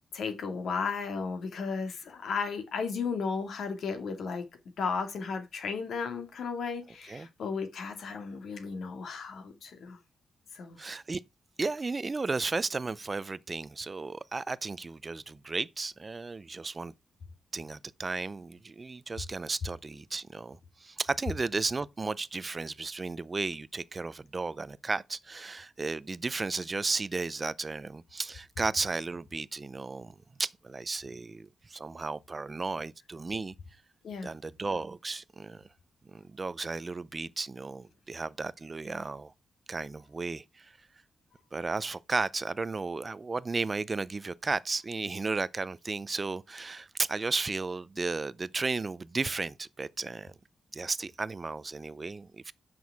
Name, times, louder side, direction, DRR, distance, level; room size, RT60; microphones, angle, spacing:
voice 1, 0.1-4.4 4.8-10.0 10.5-10.8 34.0-34.3, left 5 dB, 65° left, 2.2 m, -34 dB
voice 2, 10.8-11.2 11.6-16.9 17.5-33.5 34.2-35.7 36.1-39.3 39.7-40.7 41.5-50.3 50.7-52.5, right 3 dB, 25° right, 0.4 m, -34 dB
9.3 x 6.2 x 4.7 m
wide cardioid pair, 175°, 0 cm